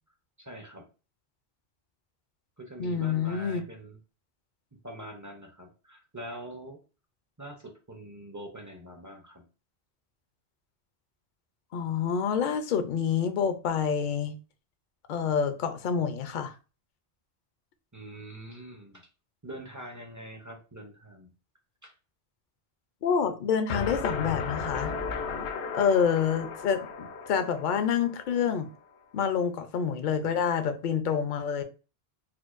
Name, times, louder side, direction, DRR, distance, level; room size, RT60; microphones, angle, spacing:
voice 1, 0.4-0.9 2.6-4.0 4.8-6.8 7.4-9.4 17.9-19.1 19.4-21.3 21.8-21.9, right 1 dB, 25° right, 0.4 m, -44 dB
voice 2, 2.8-3.6 11.7-14.3 15.1-16.5 23.0-24.9 25.7-28.7 29.1-31.6, left 7 dB, 60° left, 0.6 m, -27 dB
sound 1, 23.7-28.6, left 5 dB, 90° left, 0.9 m, -35 dB
4.4 x 2.1 x 2.4 m
omnidirectional pair, 1.1 m